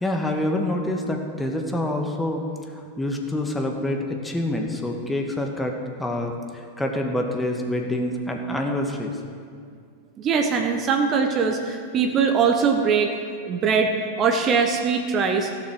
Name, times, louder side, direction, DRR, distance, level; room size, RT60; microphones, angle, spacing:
voice 1, 0.0-2.4 2.7-9.2, left 1 dB, 10° left, 2 dB, 1.5 m, -27 dB
voice 2, 10.2-13.1 13.5-15.5, right 5 dB, 35° right, 5 dB, 1.0 m, -21 dB
15.0 x 7.1 x 6.4 m, 2.2 s
figure-of-eight pair, 90°, 0 cm